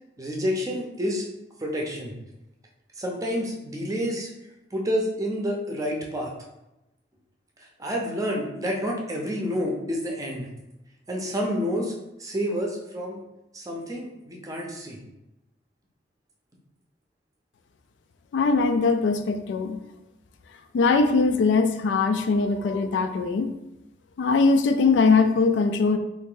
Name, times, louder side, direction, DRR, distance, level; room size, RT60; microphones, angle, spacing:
voice 1, 0.2-1.3 1.6-2.1 3.0-4.3 4.7-6.3 7.8-10.5 11.1-11.9 12.2-13.2 13.5-15.0, equal, 20° right, -1 dB, 0.6 m, -29 dB
voice 2, 18.3-19.8 20.7-23.5 24.2-26.0, left 4 dB, 75° left, 7 dB, 0.3 m, -21 dB
2.9 x 2.6 x 3.8 m, 0.92 s
head